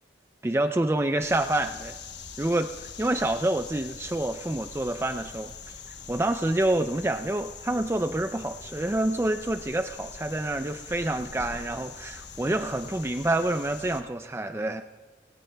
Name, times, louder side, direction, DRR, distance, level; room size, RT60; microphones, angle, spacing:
voice 1, 0.4-2.0 2.4-14.8, right 1 dB, 15° right, 7 dB, 0.4 m, -27 dB
sound 1, 1.2-14.0, left 5 dB, 75° left, 1.1 m, -43 dB
23.5 x 17.0 x 2.3 m, 1.3 s
head